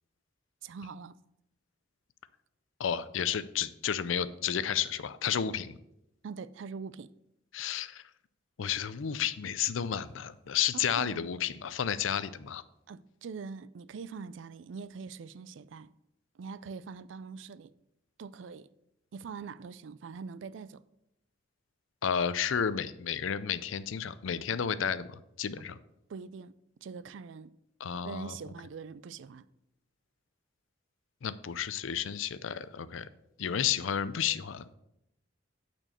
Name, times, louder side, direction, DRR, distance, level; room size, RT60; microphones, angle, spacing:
voice 1, 0.6-1.1 6.2-7.1 10.7-11.3 12.9-15.9 16.4-17.7 18.2-18.7 19.1-20.8 26.1-26.5 26.8-27.5 28.0-29.5, right 5 dB, 70° right, 0.4 m, -43 dB
voice 2, 2.8-5.8 7.5-8.0 8.6-12.6 22.0-25.8 27.8-28.3 31.2-33.1 33.4-34.7, left 8 dB, 80° left, 0.5 m, -32 dB
8.9 x 4.4 x 6.5 m
head